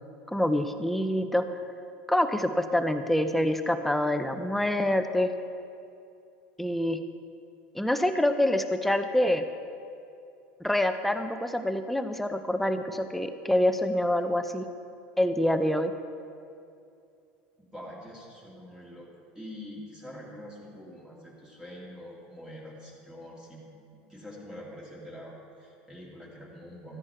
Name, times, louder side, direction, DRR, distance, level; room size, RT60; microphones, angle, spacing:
voice 1, 0.3-1.5 2.1-5.3 6.6-7.0 7.7-9.4 10.6-14.7 15.2-15.9, left 1 dB, 5° left, 8 dB, 0.7 m, -26 dB
voice 2, 17.6-19.1 19.3-23.6 23.9-27.0, equal, 15° right, -5 dB, 2.7 m, -45 dB
13.0 x 9.9 x 4.4 m, 2.5 s
supercardioid pair, 110°, 5 cm